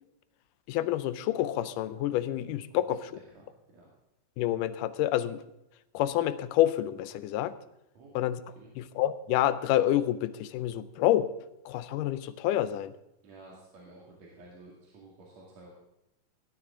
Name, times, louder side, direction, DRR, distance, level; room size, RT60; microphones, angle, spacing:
voice 1, 0.7-3.1 4.4-5.4 5.9-7.5 8.2-8.4 8.8-11.3 11.7-12.9, left 13 dB, 90° left, 14 dB, 2.2 m, -28 dB
voice 2, 3.1-3.9 7.9-8.2 8.5-8.7 13.2-15.7, right 2 dB, 60° right, -3 dB, 3.3 m, -52 dB
17.5 x 12.0 x 3.7 m, 0.88 s
omnidirectional pair, 3.7 m